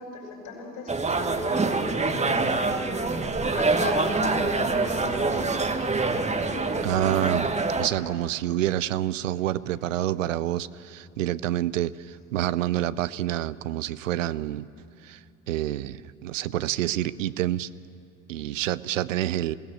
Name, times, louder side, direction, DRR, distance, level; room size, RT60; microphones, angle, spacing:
voice 1, 0.0-3.0 3.5-5.4 6.4-7.1, left 2 dB, 55° left, 0 dB, 6.3 m, -36 dB
sound 1, 0.9-7.9, right 3 dB, 15° right, 1.3 m, -25 dB
voice 2, 6.8-7.5 7.8-14.7 15.0-15.2 15.5-17.7 18.3-19.6, right 13 dB, 80° right, 18 dB, 0.5 m, -28 dB
22.0 x 17.0 x 7.5 m, 2.6 s
figure-of-eight pair, 60°, 39 cm